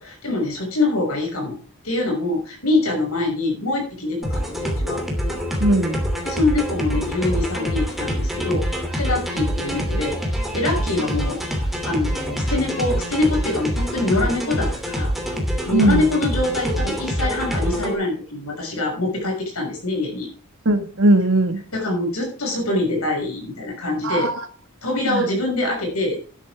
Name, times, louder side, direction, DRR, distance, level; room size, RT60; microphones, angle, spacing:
voice 1, 0.0-1.6 1.8-5.0 6.2-8.6 8.9-10.2 10.5-11.4 11.8-15.1 15.7-20.3 21.7-24.3 24.8-26.2, left 2 dB, 90° left, 6.3 m, -24 dB
sound 1, 4.2-17.9, equal, ahead, 2.9 m, -25 dB
voice 2, 5.6-6.0 15.7-16.0 20.7-21.6 24.0-24.3 25.1-25.2, right 1 dB, 65° right, 1.8 m, -18 dB
12.5 x 10.5 x 3.6 m
head